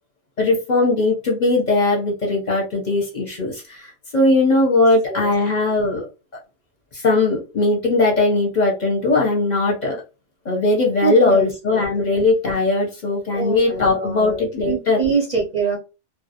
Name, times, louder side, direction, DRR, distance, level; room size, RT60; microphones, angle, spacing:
voice 1, 0.4-6.1 6.9-10.0 10.4-15.0, left 2 dB, 50° left, -1 dB, 0.7 m, -19 dB
voice 2, 11.0-12.1 13.3-15.8, right 5 dB, 50° right, -2 dB, 0.5 m, -25 dB
2.3 x 2.0 x 2.7 m, 0.30 s
omnidirectional pair, 1.2 m